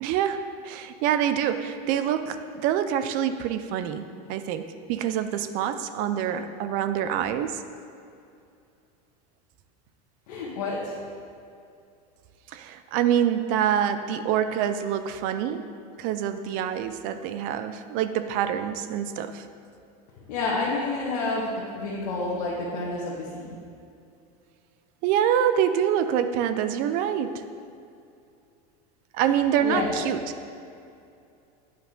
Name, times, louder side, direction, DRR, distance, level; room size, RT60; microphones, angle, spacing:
voice 1, 0.0-7.6 12.5-15.7 16.0-19.5 25.0-27.4 29.1-30.3, right 9 dB, 45° right, 10 dB, 0.4 m, -26 dB
voice 2, 10.3-10.9 20.3-23.6 29.6-30.1, left 3 dB, 80° left, -6 dB, 1.3 m, -29 dB
9.1 x 4.6 x 3.8 m, 2.5 s
supercardioid pair, 145°, 20 cm